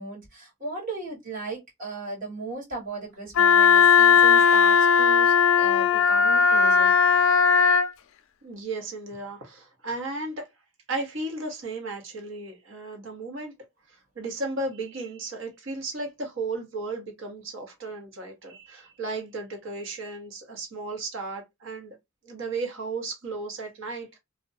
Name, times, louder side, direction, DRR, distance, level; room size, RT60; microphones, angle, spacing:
voice 1, 0.0-6.9, right 2 dB, 40° right, 1.5 m, -36 dB
Wind instrument woodwind instrument, 3.3-7.9, left 6 dB, 70° left, 0.3 m, -18 dB
voice 2, 8.4-10.5 10.9-13.5 14.2-21.9 22.2-24.2, right 3 dB, 65° right, 0.9 m, -34 dB
2.5 x 2.1 x 2.5 m
head